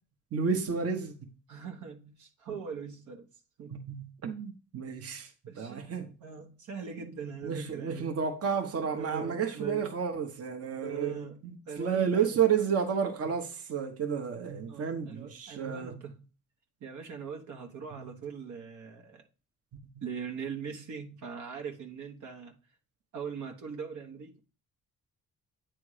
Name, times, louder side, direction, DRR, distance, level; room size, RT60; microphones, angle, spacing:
voice 1, 0.3-1.3 3.7-6.1 7.4-11.2 11.4-16.0 17.9-18.1, right 7 dB, 50° right, 1.1 m, -31 dB
voice 2, 1.5-3.3 3.6-3.8 5.5-8.1 8.7-9.9 10.8-11.4 11.7-12.3 14.7-16.1 16.8-19.2 20.0-22.5 23.1-24.4, right 6 dB, 75° right, 1.3 m, -41 dB
8.7 x 3.4 x 4.9 m
cardioid pair, 90°, 30 cm